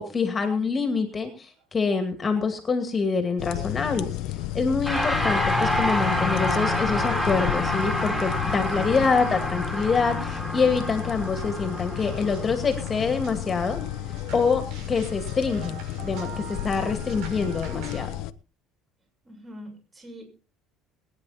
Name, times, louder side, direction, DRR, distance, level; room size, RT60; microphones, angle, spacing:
voice 1, 0.0-4.1 4.5-13.8 14.3-15.7 16.0-18.1, left 4 dB, 25° left, 6 dB, 2.4 m, -26 dB
sound 1, 1.5-1.6 1.9-2.1 2.4-18.1, right 5 dB, 75° right, 6.4 m, -47 dB
sound 2, 3.4-18.3, left 15 dB, 70° left, 0.9 m, -32 dB
sound 3, 4.8-14.3, left 1 dB, ahead, 3.8 m, -28 dB
voice 2, 19.2-20.2, equal, 20° right, 3 dB, 6.6 m, -44 dB
22.0 x 10.0 x 4.4 m, 0.35 s
cardioid pair, 120°, 0 cm